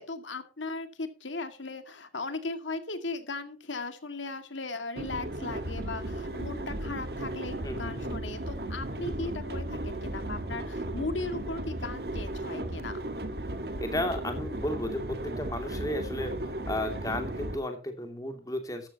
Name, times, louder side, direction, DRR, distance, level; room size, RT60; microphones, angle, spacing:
voice 1, 0.0-13.0, left 3 dB, 85° left, 8 dB, 2.2 m, -37 dB
sound 1, 4.9-17.6, right 1 dB, 55° right, 1.6 m, -35 dB
voice 2, 7.6-8.1 13.8-18.9, left 1 dB, 20° left, 5 dB, 2.6 m, -34 dB
14.0 x 13.0 x 3.0 m, 0.33 s
head